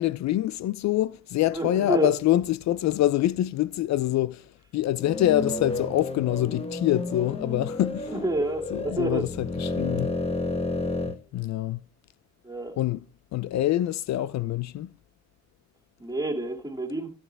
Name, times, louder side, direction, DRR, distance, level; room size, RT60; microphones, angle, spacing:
voice 1, 0.0-8.1 8.7-10.2 11.0-11.8 12.8-13.0 13.3-14.9, left 14 dB, 65° left, 0.5 m, -25 dB
voice 2, 1.5-2.1 8.1-9.2 12.4-12.8 16.0-17.1, right 2 dB, 10° right, 2.5 m, -28 dB
sound 1, 4.9-11.2, left 2 dB, 20° left, 1.1 m, -31 dB
14.5 x 6.9 x 3.4 m
cardioid pair, 90°, 30 cm